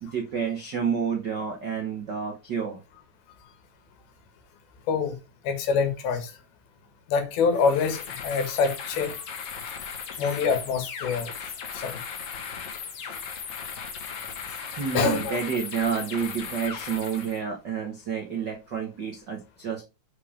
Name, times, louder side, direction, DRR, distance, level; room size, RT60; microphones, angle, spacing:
voice 1, 0.0-2.8 14.8-19.8, right 6 dB, 90° right, 0.9 m, -29 dB
voice 2, 5.5-6.3 7.1-9.2 10.2-11.3 11.7-12.0 14.9-15.4, left 5 dB, 85° left, 3.4 m, -25 dB
sound 1, 7.5-17.4, left 6 dB, 60° left, 2.6 m, -37 dB
6.9 x 5.1 x 5.0 m
omnidirectional pair, 4.3 m